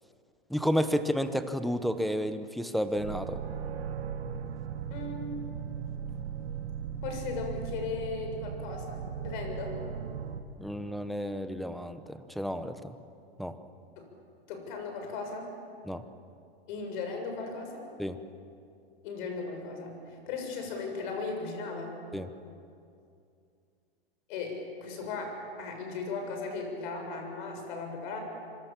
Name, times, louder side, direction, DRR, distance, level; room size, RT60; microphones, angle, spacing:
voice 1, 0.5-3.4 10.6-13.0 13.4-13.5 15.9-16.0 18.0-18.2 22.1-22.3, equal, ahead, 10 dB, 0.8 m, -31 dB
sound 1, 3.0-10.4, right 7 dB, 80° right, 1.9 m, -37 dB
voice 2, 4.9-5.4 7.0-9.8 14.0-14.1 14.5-15.5 16.7-17.9 19.0-21.9 24.3-28.2, left 4 dB, 50° left, 4 dB, 7.1 m, -37 dB
26.0 x 25.0 x 7.5 m, 2.4 s
hypercardioid pair, 150°, 32 cm